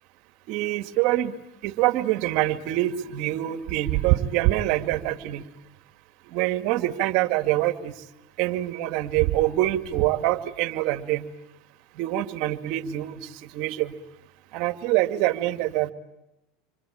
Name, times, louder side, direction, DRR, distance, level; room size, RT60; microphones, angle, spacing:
voice 1, 0.5-1.3 1.6-5.4 6.3-7.9 8.4-11.3 12.0-13.1 13.5-13.9 14.5-15.9, right 15 dB, 60° right, 10 dB, 2.1 m, -25 dB
28.0 x 25.0 x 8.7 m, 0.90 s
supercardioid pair, 105°, 0 cm